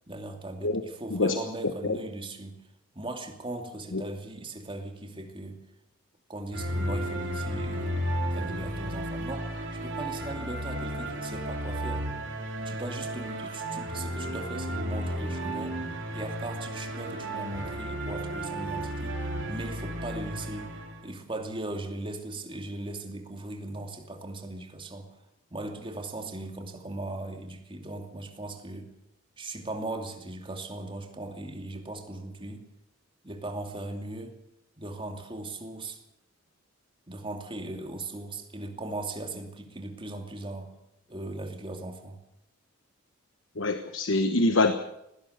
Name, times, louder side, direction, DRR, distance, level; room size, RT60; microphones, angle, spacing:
voice 1, 0.1-2.6 2.9-5.6 6.3-12.1 12.6-15.8 16.1-20.8 21.0-25.2 25.5-28.9 29.4-32.7 33.2-34.4 34.8-36.0 37.1-40.7 41.1-42.2, right 2 dB, 25° right, 4 dB, 2.6 m, -38 dB
sound 1, 6.5-21.0, right 1 dB, 60° right, 4.0 m, -33 dB
voice 2, 43.6-44.7, left 2 dB, 65° left, 9 dB, 1.2 m, -24 dB
19.5 x 17.0 x 8.1 m, 0.82 s
head